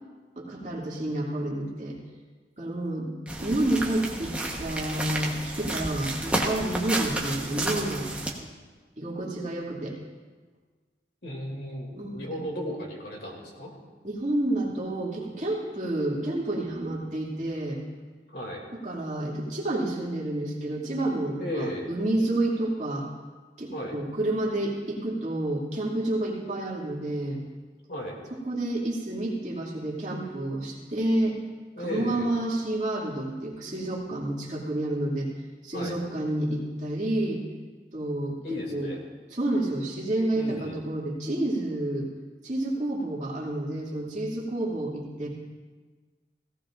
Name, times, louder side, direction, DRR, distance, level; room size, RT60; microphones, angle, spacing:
voice 1, 0.4-2.0 2.6-3.1 3.4-8.1 9.0-10.0 11.9-12.4 14.0-17.8 18.7-23.1 23.6-27.4 28.4-31.4 31.8-35.3 35.6-37.4 37.9-38.9 39.3-42.1 42.4-45.3, right 1 dB, 40° right, -5 dB, 2.5 m, -29 dB
sound 1, 3.3-8.3, right 2 dB, 5° right, 1.1 m, -31 dB
voice 2, 11.2-13.7 18.3-18.6 21.4-21.9 23.7-24.0 27.9-28.2 31.8-32.3 35.7-36.0 38.4-39.0 40.3-40.8, left 1 dB, 65° left, -1 dB, 2.6 m, -35 dB
17.5 x 16.0 x 2.6 m, 1.4 s
head